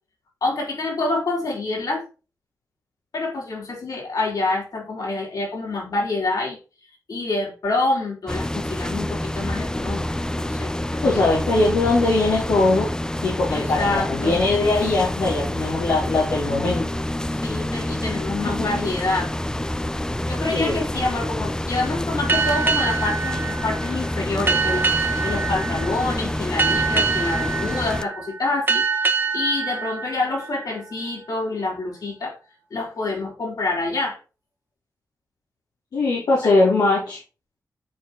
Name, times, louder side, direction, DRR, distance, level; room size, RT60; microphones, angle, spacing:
voice 1, 0.4-2.1 3.1-6.6 7.1-11.3 13.5-14.4 17.3-19.3 20.3-28.8 29.3-32.4 32.7-34.2 36.4-36.6, left 2 dB, 70° left, -2 dB, 4.1 m, -27 dB
sound 1, 8.3-28.0, left 1 dB, 10° left, 0.6 m, -27 dB
voice 2, 11.0-12.9 13.2-16.9 18.6-18.7 20.5-20.7 35.9-37.2, left 2 dB, 85° left, -5 dB, 2.3 m, -21 dB
sound 2, 22.3-31.4, right 5 dB, 35° right, 1.4 m, -25 dB
9.1 x 4.4 x 4.3 m, 0.34 s
cardioid pair, 50°, 6 cm